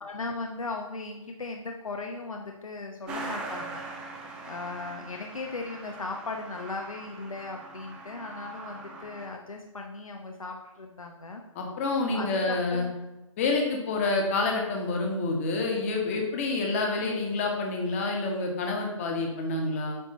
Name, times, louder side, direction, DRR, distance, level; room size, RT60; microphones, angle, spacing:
voice 1, 0.0-3.8 4.4-11.4 12.1-13.0, left 3 dB, 85° left, 2 dB, 1.0 m, -37 dB
Truck, 3.1-9.3, right 3 dB, 5° right, 0.4 m, -41 dB
voice 2, 11.5-12.9 13.4-20.0, left 3 dB, 25° left, 1 dB, 1.4 m, -28 dB
9.0 x 3.1 x 6.5 m, 1.0 s
hypercardioid pair, 155°, 17 cm